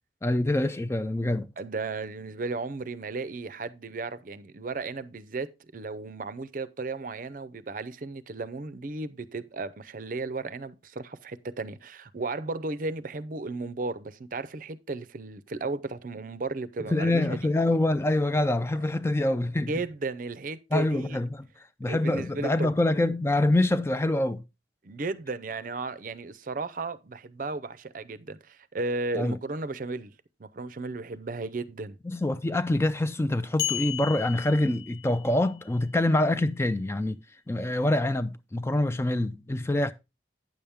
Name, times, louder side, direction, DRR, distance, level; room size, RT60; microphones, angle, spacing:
voice 1, 0.2-1.5 16.9-19.7 20.7-21.5 21.8-24.4 29.2-29.4 32.0-37.2 37.5-39.9, left 1 dB, 15° left, 0.3 m, -25 dB
voice 2, 1.6-17.4 19.7-21.2 21.9-22.7 24.8-30.1 30.4-32.0, right 3 dB, 45° right, 0.5 m, -34 dB
sound 1, 33.6-35.4, left 12 dB, 70° left, 0.6 m, -33 dB
9.4 x 7.0 x 3.5 m
head